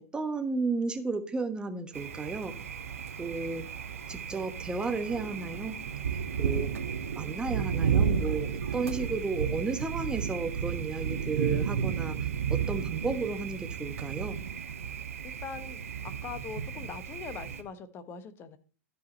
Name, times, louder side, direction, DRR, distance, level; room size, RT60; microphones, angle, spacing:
voice 1, 0.0-2.5 3.2-3.7 4.1-5.8 6.4-6.7 7.2-12.2 12.5-14.4, right 4 dB, 10° right, 1.1 m, -33 dB
Thunder, 1.9-17.6, right 7 dB, 70° right, 0.9 m, -33 dB
voice 2, 15.2-18.6, left 6 dB, 30° left, 1.0 m, -42 dB
12.5 x 4.9 x 4.2 m
figure-of-eight pair, 95°, 8 cm